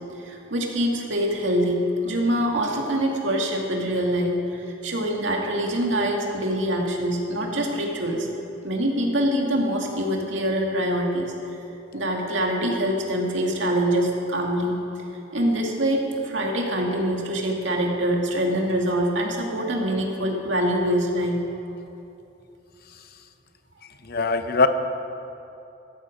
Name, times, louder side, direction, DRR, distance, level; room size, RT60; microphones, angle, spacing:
voice 1, 0.2-8.3 8.6-11.3 11.9-14.8 15.3-21.4, equal, 75° right, 0 dB, 2.3 m, -24 dB
voice 2, 24.0-24.7, left 3 dB, 50° left, 9 dB, 0.8 m, -21 dB
16.5 x 14.0 x 5.2 m, 2.9 s
head